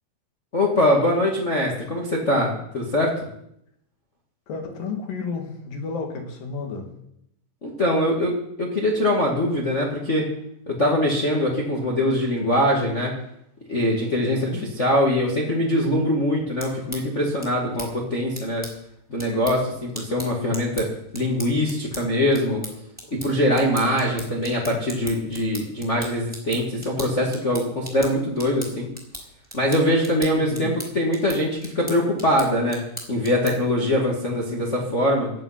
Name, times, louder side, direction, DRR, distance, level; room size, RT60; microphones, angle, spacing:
voice 1, 0.5-3.1 7.6-10.3 10.7-13.1 13.7-18.6 19.1-20.9 21.1-22.6 23.1-28.9 29.5-32.8 33.1-35.3, left 1 dB, 25° left, -2 dB, 1.8 m, -23 dB
voice 2, 4.5-6.9 14.2-14.8 23.8-24.3 30.3-30.8, left 3 dB, 75° left, 3 dB, 4.1 m, -32 dB
sound 1, 16.4-33.8, equal, 5° right, 3.3 m, -40 dB
17.0 x 10.5 x 5.9 m, 0.74 s
omnidirectional pair, 4.0 m